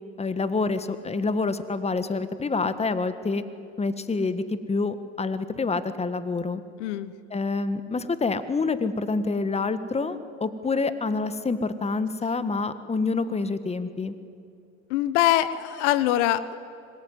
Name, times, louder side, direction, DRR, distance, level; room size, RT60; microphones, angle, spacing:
voice 1, 0.2-3.4 3.8-6.6 7.3-14.1, left 3 dB, 20° left, 12 dB, 1.6 m, -27 dB
voice 2, 6.8-7.1 14.9-16.6, left 13 dB, 75° left, 15 dB, 1.1 m, -23 dB
25.0 x 20.5 x 9.5 m, 2.5 s
hypercardioid pair, 85°, 35 cm